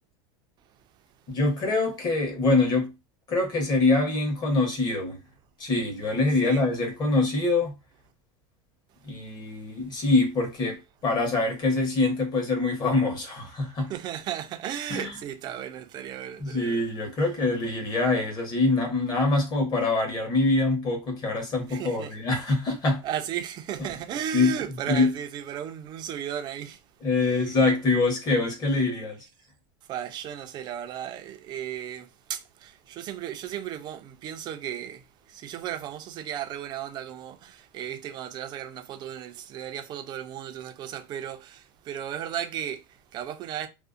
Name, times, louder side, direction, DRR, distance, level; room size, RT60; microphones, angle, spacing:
voice 1, 1.3-2.9 3.3-5.2 5.6-7.7 9.0-13.9 14.9-15.1 16.4-23.0 24.3-24.5 24.9-25.1 27.0-29.2, left 3 dB, 30° left, 1.0 m, -24 dB
voice 2, 13.9-16.9 17.2-17.3 21.7-22.2 23.0-26.8 27.2-27.7 29.9-43.7, right 10 dB, 30° right, 0.4 m, -35 dB
2.5 x 2.1 x 2.4 m
supercardioid pair, 150°, 14 cm